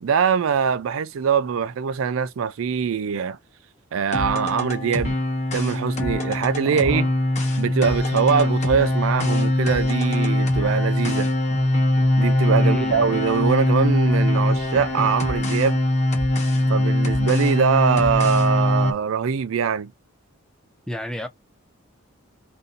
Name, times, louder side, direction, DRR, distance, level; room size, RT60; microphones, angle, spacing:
voice 1, 0.0-3.4 3.9-5.1 5.5-7.1 7.6-11.3 12.2-15.8 16.7-19.9, right 6 dB, 70° right, 0.4 m, -22 dB
sound 1, 4.1-18.9, left 1 dB, 35° left, 0.9 m, -22 dB
voice 2, 6.7-7.1 12.6-13.1 20.9-21.3, left 1 dB, 5° left, 0.5 m, -30 dB
2.7 x 2.6 x 3.7 m
head